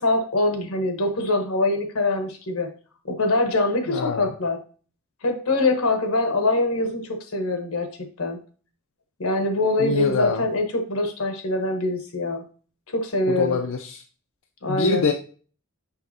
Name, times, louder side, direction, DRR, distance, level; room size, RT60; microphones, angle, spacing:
voice 1, 0.0-2.7 3.1-4.6 5.2-8.4 9.2-12.4 12.9-13.6 14.6-15.0, left 2 dB, 85° left, 5 dB, 1.1 m, -24 dB
voice 2, 3.9-4.3 9.8-10.4 13.3-14.0 14.7-15.1, left 4 dB, 65° left, 4 dB, 0.5 m, -25 dB
6.3 x 5.5 x 2.7 m, 0.41 s
head